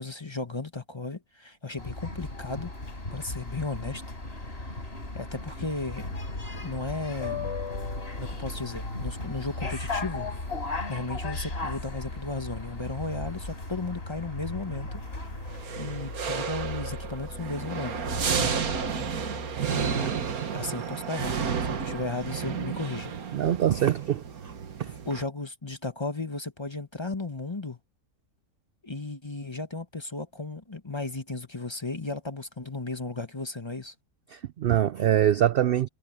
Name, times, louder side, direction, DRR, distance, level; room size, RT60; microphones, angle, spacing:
voice 1, 0.0-2.7 3.1-4.0 4.4-4.8 5.1-6.1 6.5-7.5 8.2-10.3 10.9-15.0 15.8-17.9 18.4-18.6 19.7-20.1 20.5-23.1 25.0-27.8 28.8-33.9, left 3 dB, 20° left, 1.0 m, -35 dB
sound 1, 1.8-15.6, left 3 dB, 45° left, 4.7 m, -37 dB
sound 2, 6.0-20.1, left 2 dB, 70° left, 3.9 m, -39 dB
sound 3, 15.5-25.2, right 6 dB, 90° right, 1.9 m, -32 dB
voice 2, 23.3-24.5 24.8-24.9 34.3-35.9, right 11 dB, 70° right, 0.5 m, -24 dB
omnidirectional pair, 1.5 m